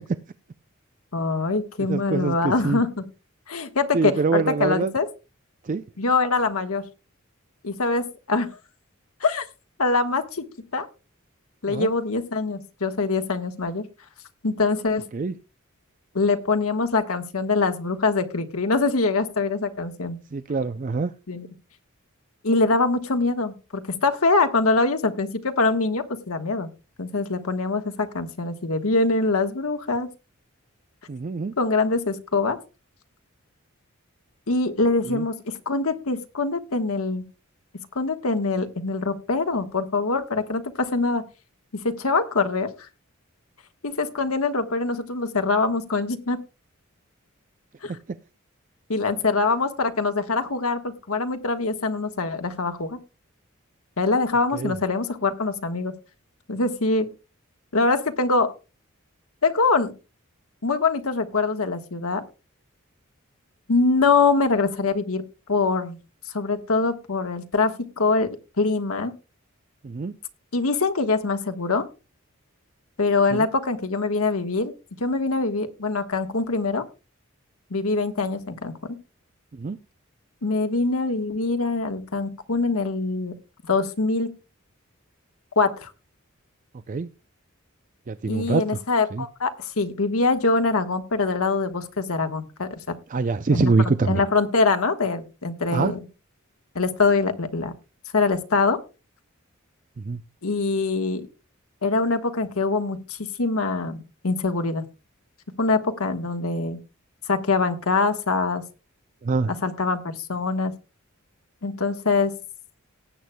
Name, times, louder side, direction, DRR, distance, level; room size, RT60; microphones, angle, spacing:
voice 1, 1.1-3.0 3.5-5.1 6.0-6.8 7.6-8.5 9.2-9.5 9.8-10.5 10.7-10.9 11.6-13.8 14.4-15.0 16.1-20.2 21.3-21.5 22.4-26.7 27.0-30.1 31.6-32.6 34.5-35.3 35.7-37.2 37.9-41.2 41.7-42.7 43.8-46.4 47.8-47.9 48.9-53.0 54.0-55.9 56.5-57.1 57.7-58.5 59.4-59.9 60.6-62.2 63.7-65.2 65.5-66.0 66.3-68.3 68.6-69.1 70.5-71.8 73.0-74.7 75.0-76.8 77.7-79.0 80.4-83.3 83.7-84.3 85.5-85.9 88.3-92.9 93.5-93.7 94.1-96.0 96.7-97.7 98.1-98.8 100.4-101.3 101.8-104.8 105.6-106.8 107.3-108.6 109.6-110.7 111.6-112.3, left 3 dB, 90° left, 7 dB, 1.3 m, -24 dB
voice 2, 1.9-2.8 3.9-4.9 5.6-5.8 11.7-11.9 15.1-15.3 20.3-21.1 31.1-31.5 35.0-35.2 47.9-48.0 54.5-54.7 69.8-70.1 73.3-73.5 79.5-79.8 86.9-87.1 88.1-88.6 89.1-89.3 93.1-94.2 95.7-95.9 100.0-100.2 109.2-109.5, right 4 dB, 40° right, 12 dB, 0.4 m, -24 dB
18.5 x 8.5 x 2.2 m, 0.30 s
head